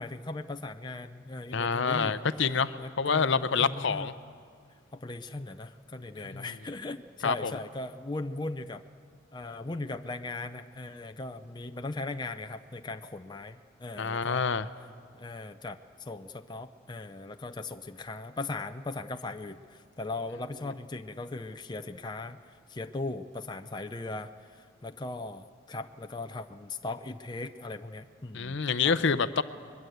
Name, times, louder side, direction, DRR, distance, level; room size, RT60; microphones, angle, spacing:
voice 1, 0.0-2.2 2.8-4.1 4.9-8.8 9.3-14.5 15.1-22.4 22.7-29.0, left 2 dB, 20° left, 7 dB, 0.5 m, -38 dB
voice 2, 1.5-4.1 6.3-6.5 7.2-7.5 14.0-14.7 28.3-29.4, left 5 dB, 60° left, 13 dB, 0.7 m, -27 dB
22.0 x 21.5 x 8.0 m, 2.1 s
head